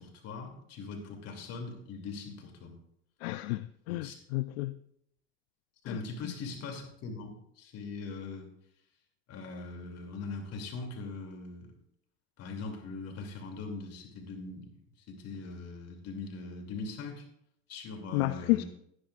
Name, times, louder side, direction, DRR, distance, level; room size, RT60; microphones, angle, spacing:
voice 1, 0.0-2.8 3.9-4.2 5.8-8.5 9.3-11.8 12.4-14.8 15.1-17.2 17.7-18.7, left 3 dB, 55° left, 2.8 m, -41 dB
voice 2, 3.2-4.8 5.9-6.0 18.1-18.6, left 21 dB, 80° left, 0.4 m, -31 dB
16.0 x 9.7 x 2.5 m
supercardioid pair, 90°, 31 cm